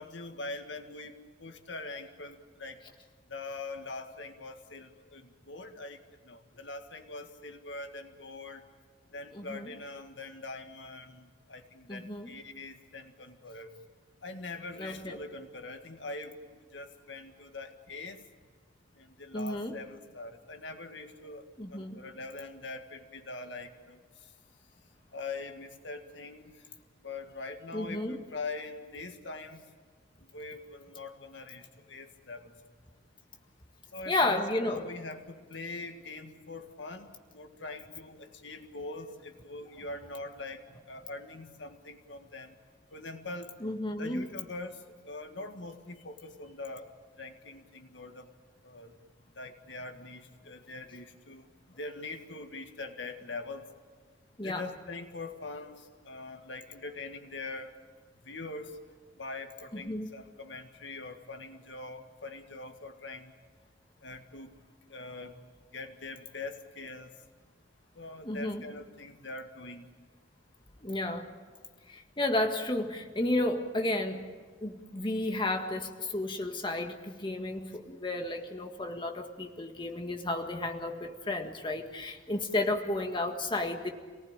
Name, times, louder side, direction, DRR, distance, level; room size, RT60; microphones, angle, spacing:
voice 1, 0.0-2.8 3.3-6.0 6.2-8.6 9.1-13.7 14.2-16.4 16.7-18.2 19.0-21.4 21.7-24.0 25.1-26.5 27.0-29.6 30.3-32.5 33.9-37.1 37.3-40.6 40.9-42.5 42.9-43.5 44.0-46.9 47.2-48.3 48.6-48.9 49.4-51.5 51.8-53.7 54.4-57.7 58.2-58.8 59.2-63.3 64.0-64.6 64.9-65.4 65.7-67.1 68.0-69.9, left 3 dB, 75° left, 6 dB, 1.8 m, -43 dB
voice 2, 9.3-9.7 11.9-12.3 14.8-15.2 19.3-19.7 21.6-22.0 27.7-28.2 34.1-34.8 43.6-44.3 54.4-54.6 59.9-60.1 68.2-68.6 70.8-71.3 71.9-74.3 74.6-83.9, left 2 dB, 25° left, 4 dB, 1.8 m, -32 dB
28.0 x 19.0 x 8.9 m, 1.5 s
head